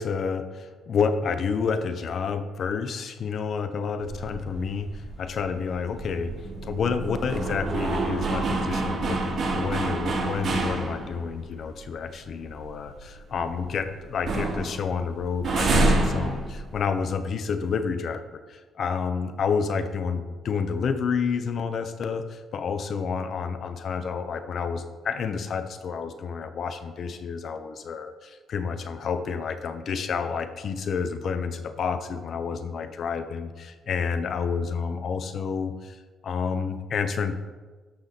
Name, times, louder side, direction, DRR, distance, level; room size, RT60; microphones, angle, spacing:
voice 1, 0.0-37.4, left 5 dB, 60° left, 10 dB, 0.9 m, -29 dB
sound 1, 4.0-11.4 11.8-11.9 12.3-13.8 14.1-17.1, right 2 dB, 50° right, 2.8 m, -28 dB
13.5 x 5.8 x 4.2 m, 1.3 s
cardioid pair, 90°, 0 cm